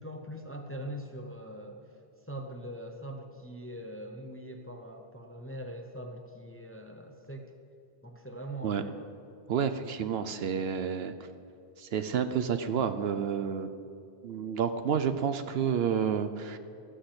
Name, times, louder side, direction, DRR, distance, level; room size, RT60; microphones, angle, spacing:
voice 1, 0.0-1.8 2.3-7.5 8.0-9.1, right 1 dB, 15° left, 4 dB, 0.6 m, -42 dB
voice 2, 9.5-11.1 11.8-13.7 14.2-16.6, right 7 dB, 65° right, 10 dB, 0.8 m, -30 dB
13.0 x 6.3 x 7.9 m, 2.5 s
omnidirectional pair, 1.2 m